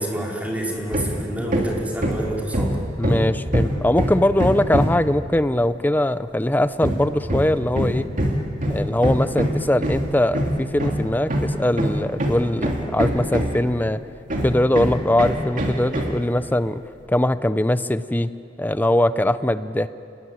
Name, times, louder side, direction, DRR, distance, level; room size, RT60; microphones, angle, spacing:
voice 1, 0.0-2.8, right 1 dB, 10° right, -2 dB, 4.3 m, -28 dB
Hammer, 0.9-1.2 1.5-5.1 6.8-13.7 14.3-16.2, equal, 45° right, 2.8 m, -24 dB
voice 2, 3.0-8.1 8.7-14.0 14.4-16.8 17.1-18.3 18.6-19.9, left 1 dB, 10° left, 13 dB, 0.6 m, -21 dB
28.0 x 19.5 x 9.5 m, 2.7 s
head